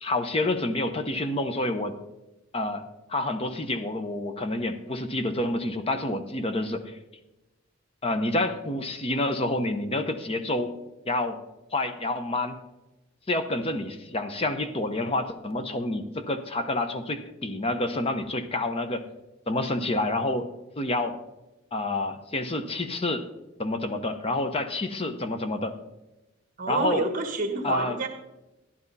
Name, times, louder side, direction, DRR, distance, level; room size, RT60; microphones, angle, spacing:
voice 1, 0.0-1.9 2.5-2.8 3.1-7.0 8.0-10.7 11.1-11.4 11.7-12.6 13.3-19.0 19.5-20.5 20.8-21.2 21.7-23.3 23.6-25.8 26.7-27.1 27.6-28.0, left 2 dB, 30° left, 9 dB, 0.8 m, -28 dB
voice 2, 26.6-28.1, right 3 dB, 40° right, 6 dB, 1.3 m, -28 dB
12.0 x 11.0 x 4.1 m, 1.0 s
head